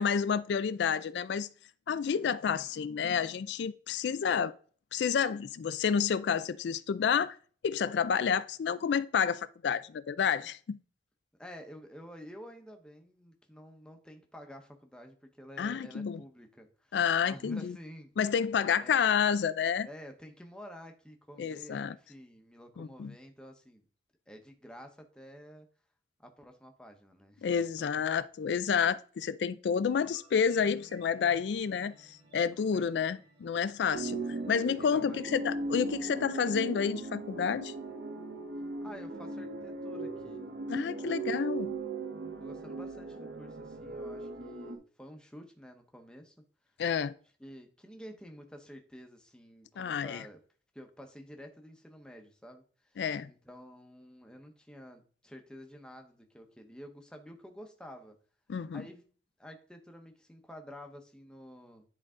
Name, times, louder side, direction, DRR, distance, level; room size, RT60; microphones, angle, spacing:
voice 1, 0.0-1.5 1.9-4.5 4.9-7.4 7.6-10.8 15.6-16.2 16.9-17.8 18.2-19.9 21.4-22.0 22.8-23.1 27.4-34.2 34.5-37.7 40.7-41.7 46.8-47.1 49.8-50.2 53.0-53.3 58.5-58.8, left 7 dB, 80° left, 0.4 m, -29 dB
voice 2, 11.4-18.2 18.8-19.0 19.8-23.8 24.3-25.7 26.2-28.0 32.6-33.2 34.8-35.2 38.8-40.4 40.7-41.4 42.4-46.3 47.4-50.4 50.7-53.0 53.3-58.1 58.7-59.1 59.4-61.8, equal, 5° left, 0.9 m, -50 dB
sound 1, 29.9-36.9, right 1 dB, 35° right, 2.3 m, -60 dB
sound 2, 33.9-44.8, right 3 dB, 75° right, 0.9 m, -38 dB
10.0 x 4.0 x 3.7 m
head